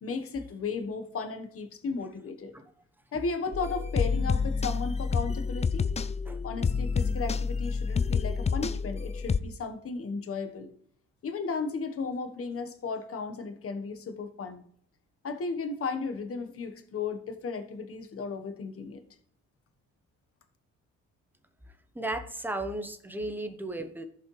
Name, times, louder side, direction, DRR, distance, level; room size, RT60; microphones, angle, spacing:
voice 1, 0.0-2.5 3.1-5.9 6.4-10.7 11.2-14.6 15.2-19.0, left 4 dB, 50° left, 8 dB, 1.3 m, -35 dB
sound 1, 3.5-9.4, left 5 dB, 20° left, 0.4 m, -28 dB
voice 2, 21.9-24.1, right 1 dB, 5° right, 7 dB, 1.1 m, -35 dB
14.5 x 5.5 x 3.3 m, 0.63 s
cardioid pair, 90°, 30 cm